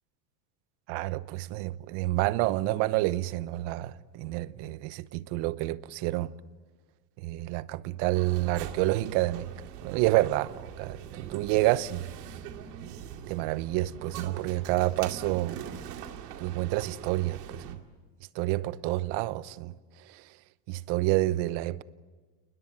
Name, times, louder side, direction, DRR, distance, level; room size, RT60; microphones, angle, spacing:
voice 1, 0.9-6.3 7.2-9.5 9.8-12.1 12.8-12.9 13.3-15.6 16.4-17.8 18.3-19.7 20.1-20.2 20.7-21.8, right 17 dB, 60° right, 1.0 m, -29 dB
sound 1, 8.1-17.7, right 9 dB, 85° right, 2.4 m, -42 dB
29.0 x 20.5 x 8.9 m
supercardioid pair, 115°, 46 cm